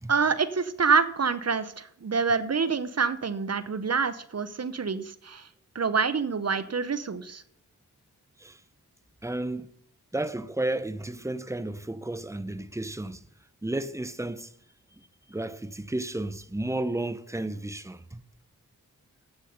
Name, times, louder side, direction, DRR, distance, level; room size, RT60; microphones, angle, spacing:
voice 1, 0.1-5.5 5.7-7.4, right 5 dB, 40° right, 0.9 m, -26 dB
voice 2, 9.2-9.7 10.1-13.2 13.6-14.5 15.3-18.2, right 2 dB, 5° right, 0.8 m, -32 dB
9.8 x 8.6 x 5.3 m
supercardioid pair, 40°, 41 cm